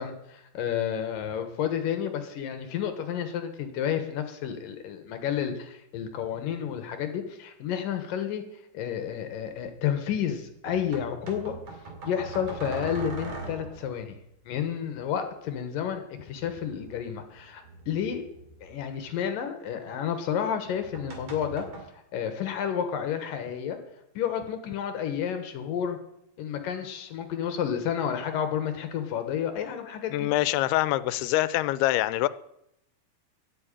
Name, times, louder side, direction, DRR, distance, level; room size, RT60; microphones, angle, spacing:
voice 1, 0.0-8.4 8.7-11.6 12.1-14.2 14.5-18.2 18.6-21.6 22.1-23.8 24.2-26.0 26.4-30.3, left 8 dB, 70° left, 2.6 m, -31 dB
sound 1, 10.7-14.0 16.3-19.0 20.6-21.8, right 3 dB, 50° right, 3.4 m, -41 dB
voice 2, 30.1-32.3, left 16 dB, 90° left, 2.6 m, -25 dB
11.0 x 8.9 x 8.8 m
omnidirectional pair, 4.5 m